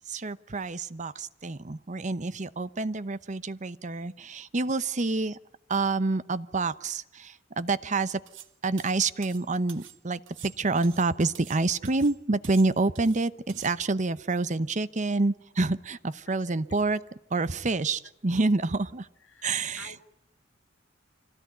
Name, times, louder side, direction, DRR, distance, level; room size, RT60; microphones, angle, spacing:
voice 1, 0.1-5.4 5.7-8.2 8.6-17.0 17.3-19.1 19.4-19.9, right 3 dB, 40° right, 15 dB, 0.8 m, -28 dB
sound 1, 8.3-8.5 8.8-10.0 10.3-11.6 11.9-12.2 12.4-13.2 13.5-13.7, right 10 dB, 90° right, 1.6 m, -48 dB
voice 2, 16.3-16.6 16.9-17.0 19.2-20.0, left 4 dB, 85° left, 6 dB, 2.2 m, -51 dB
25.5 x 17.5 x 9.4 m, 0.82 s
head